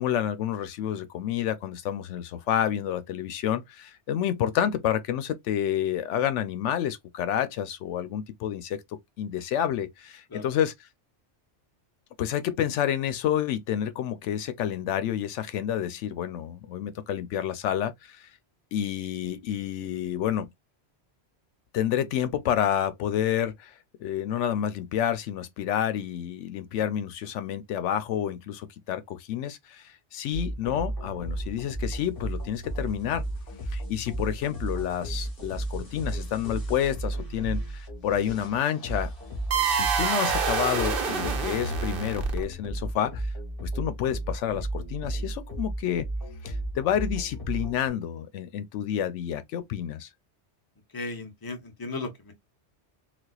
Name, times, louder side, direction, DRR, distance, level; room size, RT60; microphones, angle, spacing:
voice 1, 0.0-8.8 9.2-10.9 12.2-18.3 18.7-20.5 21.7-23.7 24.0-33.2 33.7-39.1 39.8-43.3 43.6-46.1 46.4-50.1, left 10 dB, 90° left, 0.9 m, -29 dB
sound 1, 30.3-47.9, right 1 dB, 55° left, 1.6 m, -34 dB
sound 2, 39.5-42.7, right 6 dB, 55° right, 0.9 m, -27 dB
voice 2, 50.9-52.3, left 3 dB, 20° left, 0.8 m, -36 dB
4.1 x 2.4 x 2.3 m
omnidirectional pair, 1.2 m